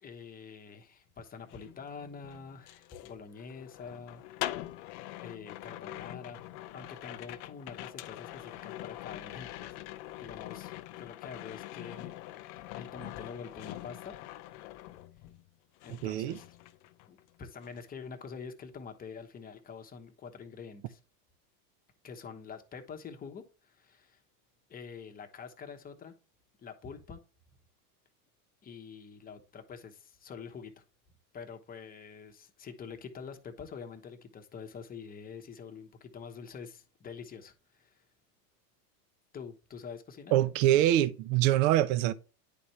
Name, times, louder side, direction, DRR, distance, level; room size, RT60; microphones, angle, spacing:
voice 1, 0.0-4.2 5.2-6.4 6.7-9.8 10.2-14.1 15.8-16.6 17.1-21.0 22.0-24.2 24.7-26.1 26.6-27.2 28.6-30.8 31.3-38.0 39.3-40.3, left 6 dB, 20° left, 1.0 m, -46 dB
sound 1, 1.4-15.5 15.8-17.3 17.6-17.9, left 16 dB, 35° left, 0.4 m, -44 dB
voice 2, 16.0-16.4 40.3-42.1, right 13 dB, 55° right, 0.7 m, -24 dB
10.0 x 4.3 x 3.1 m
supercardioid pair, 130°, 48 cm